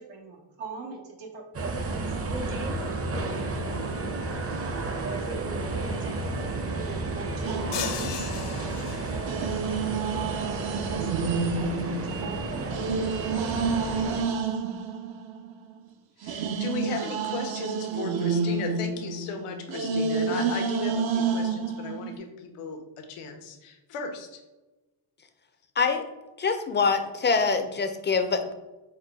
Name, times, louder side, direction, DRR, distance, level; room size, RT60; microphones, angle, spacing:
voice 1, 0.0-2.8 3.3-3.5 4.3-4.4 5.0-8.3 8.6-9.5 10.6-11.1 11.5-11.7 12.0-12.8, right 4 dB, 90° right, 1 dB, 1.2 m, -41 dB
sound 1, 1.5-14.2, right 2 dB, 30° right, 0.6 m, -32 dB
sound 2, 7.4-8.7 9.3-15.7 16.2-22.2, right 5 dB, 65° right, 0.7 m, -29 dB
sound 3, 7.7-9.5, left 8 dB, 60° left, 0.7 m, -36 dB
voice 2, 16.2-24.4, left 4 dB, 85° left, 5 dB, 0.8 m, -36 dB
voice 3, 26.4-28.5, left 5 dB, 25° left, 7 dB, 0.4 m, -24 dB
4.6 x 2.2 x 4.6 m, 1.1 s
cardioid pair, 90°, 49 cm